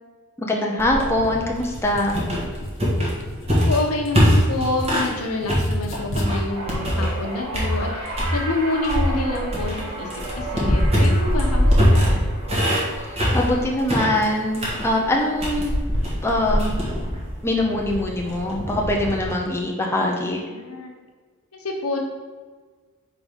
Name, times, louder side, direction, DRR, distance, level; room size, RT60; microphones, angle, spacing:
voice 1, 0.4-2.2 13.0-15.8 16.2-16.7 17.4-20.4, left 1 dB, 10° left, -1 dB, 0.6 m, -23 dB
sound 1, 0.8-5.2 5.5-7.2 7.5-8.4 8.8-19.3, equal, 30° right, 1.4 m, -22 dB
sound 2, 1.7-5.1 5.4-6.3, left 1 dB, 60° left, 0.7 m, -36 dB
voice 2, 3.5-12.2 20.5-20.9 21.5-22.0, left 2 dB, 75° left, 0 dB, 1.1 m, -28 dB
sound 3, 6.5-16.9 17.2-17.7 18.8-18.9, right 2 dB, 70° right, 1.8 m, -35 dB
4.7 x 3.8 x 5.3 m, 1.5 s
head